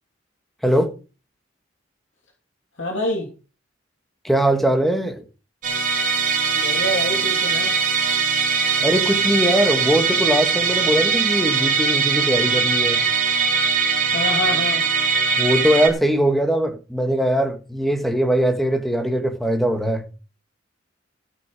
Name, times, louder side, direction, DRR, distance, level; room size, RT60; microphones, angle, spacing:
voice 1, 0.6-0.9 4.2-5.2 8.8-13.0 15.4-20.1, equal, ahead, 1.5 m, -21 dB
voice 2, 2.8-3.3 6.5-7.7 14.0-14.8, left 1 dB, 60° left, 2.9 m, -26 dB
Musical instrument, 5.6-15.9, right 5 dB, 40° right, 2.8 m, -21 dB
13.5 x 8.3 x 4.9 m
head